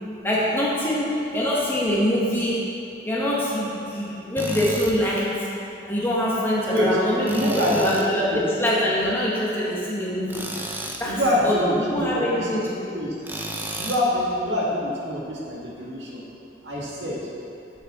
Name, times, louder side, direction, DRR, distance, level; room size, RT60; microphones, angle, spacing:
voice 1, 0.2-2.6 3.0-5.3 5.9-10.4 11.0-13.0, equal, 10° left, -6 dB, 1.2 m, -24 dB
Tools, 4.4-5.0 7.3-8.1 10.3-11.1 13.2-14.1, right 1 dB, 10° right, 0.4 m, -32 dB
voice 2, 7.2-8.4 11.0-12.5 12.9-13.1 13.7-16.2 16.6-17.2, left 1 dB, 85° right, -4 dB, 1.8 m, -25 dB
8.2 x 7.8 x 3.7 m, 2.7 s
head